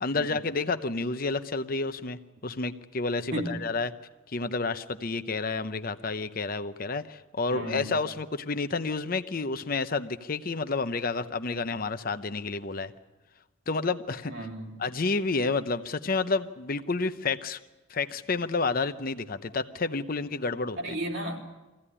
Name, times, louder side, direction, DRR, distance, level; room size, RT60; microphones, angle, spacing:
voice 1, 0.0-3.9 4.3-12.9 13.7-14.3 14.8-17.6 17.9-20.8, left 3 dB, 45° left, 10 dB, 0.8 m, -30 dB
voice 2, 3.3-3.6 7.5-8.0 14.3-14.8 20.8-21.5, right 1 dB, 60° right, 0 dB, 3.4 m, -34 dB
24.0 x 16.0 x 10.0 m, 1.1 s
head